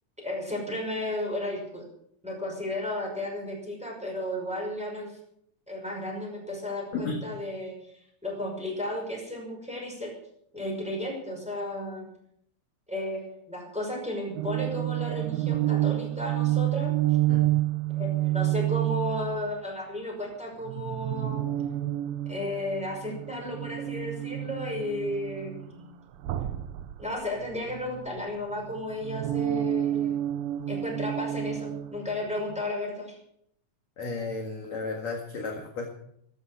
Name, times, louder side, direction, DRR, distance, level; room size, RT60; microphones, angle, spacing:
voice 1, 0.2-1.8 2.2-5.2 5.7-10.2 10.5-12.0 12.9-16.9 17.9-21.5 22.3-26.0 27.0-30.1 30.7-33.2, left 1 dB, ahead, -1 dB, 5.4 m, -34 dB
sound 1, 14.4-19.5 20.6-25.8 26.2-28.2 28.6-32.6, right 14 dB, 75° right, 2.2 m, -29 dB
voice 2, 34.0-35.9, left 3 dB, 50° left, 1 dB, 2.6 m, -33 dB
15.0 x 14.0 x 6.4 m, 0.72 s
omnidirectional pair, 4.9 m